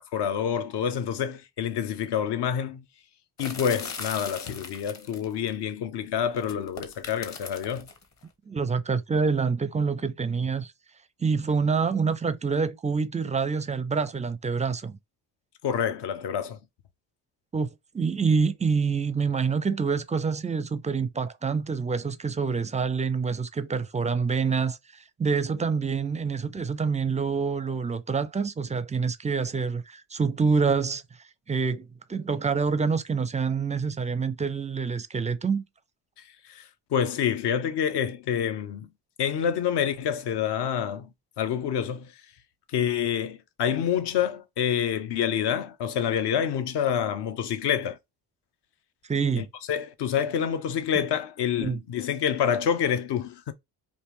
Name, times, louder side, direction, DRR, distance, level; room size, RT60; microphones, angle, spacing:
voice 1, 0.1-2.8 3.4-7.9 15.6-16.6 36.4-38.9 39.2-41.1 41.4-42.1 42.7-48.0 49.4-53.5, left 8 dB, 60° left, 0.7 m, -27 dB
sound 1, 3.4-5.5 6.3-8.0, left 4 dB, 35° left, 1.0 m, -39 dB
voice 2, 8.5-10.7 11.2-15.0 17.5-24.8 25.2-31.0 31.5-35.6 49.1-49.5 51.6-51.8, right 5 dB, 15° right, 0.4 m, -26 dB
3.3 x 2.6 x 3.0 m
supercardioid pair, 55°, 47 cm